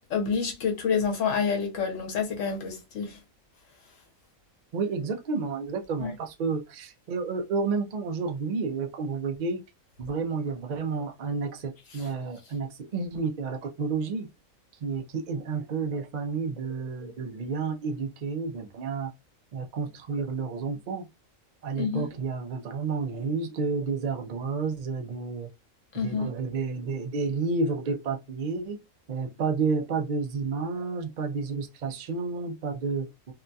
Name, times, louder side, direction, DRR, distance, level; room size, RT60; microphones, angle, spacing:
voice 1, 0.1-3.2 6.0-6.1 21.8-22.1 25.9-26.3, left 6 dB, 70° left, 1.1 m, -28 dB
voice 2, 4.7-9.6 10.0-14.3 14.8-19.1 19.5-21.1 21.6-25.5 25.9-28.8 29.1-33.3, right 4 dB, 80° right, 0.4 m, -31 dB
2.8 x 2.6 x 2.2 m
omnidirectional pair, 1.4 m